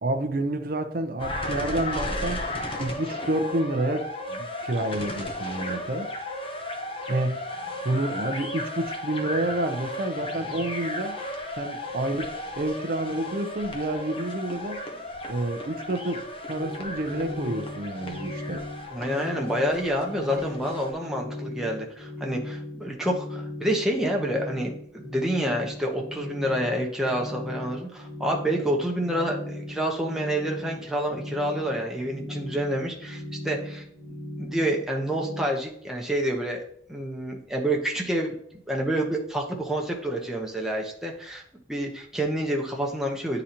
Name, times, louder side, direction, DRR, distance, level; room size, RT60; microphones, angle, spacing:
voice 1, 0.0-2.4 2.8-6.1 7.1-7.4 7.8-11.2 11.6-14.9 15.3-18.6 21.0-21.2, right 1 dB, 50° right, 0.6 m, -29 dB
sound 1, 1.2-20.9, left 1 dB, 30° left, 0.8 m, -34 dB
sound 2, 16.5-35.4, left 1 dB, 80° left, 2.5 m, -38 dB
voice 2, 18.9-33.8 34.4-41.4 41.7-43.4, right 1 dB, 5° right, 0.9 m, -28 dB
9.6 x 3.9 x 2.9 m
head